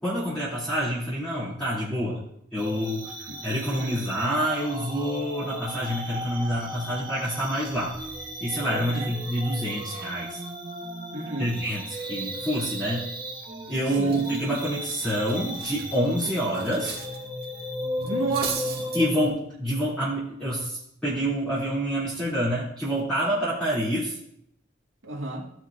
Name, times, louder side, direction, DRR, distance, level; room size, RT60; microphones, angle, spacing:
voice 1, 0.0-2.2 2.5-7.9 8.4-10.4 11.4-13.1 13.7-17.0 18.9-24.2, equal, 5° left, -12 dB, 2.9 m, -27 dB
sound 1, 2.6-19.3, equal, 25° right, 1.3 m, -36 dB
voice 2, 3.7-4.0 8.8-9.1 11.1-11.6 14.0-14.2 18.0-18.9 25.0-25.4, right 3 dB, 80° right, -1 dB, 2.0 m, -32 dB
Cutlery silverware, 13.4-13.7 14.0-17.2 17.4-17.6 18.0-19.0, right 6 dB, 50° right, 2.0 m, -37 dB
16.0 x 6.2 x 2.6 m, 0.74 s
head